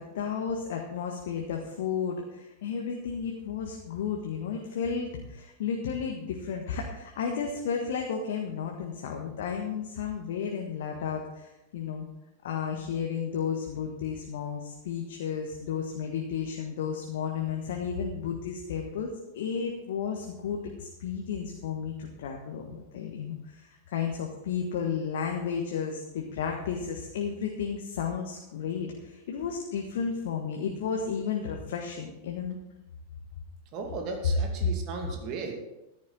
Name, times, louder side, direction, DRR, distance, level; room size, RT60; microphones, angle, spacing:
voice 1, 0.0-12.1 12.4-32.6, left 6 dB, 55° left, 2 dB, 1.5 m, -33 dB
voice 2, 33.7-35.6, right 4 dB, 40° right, 3 dB, 2.2 m, -36 dB
14.0 x 10.5 x 4.0 m, 0.94 s
figure-of-eight pair, 90°, 0 cm